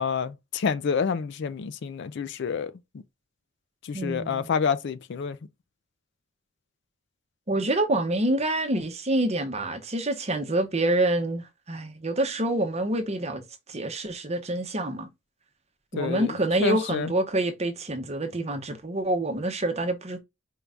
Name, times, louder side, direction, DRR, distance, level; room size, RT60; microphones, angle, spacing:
voice 1, 0.0-2.7 3.8-5.4 16.0-16.3 16.6-17.1, left 6 dB, 55° left, 0.4 m, -28 dB
voice 2, 3.9-4.5 7.5-13.4 13.7-15.1 15.9-20.2, right 1 dB, 30° right, 0.8 m, -27 dB
4.6 x 2.5 x 3.3 m
head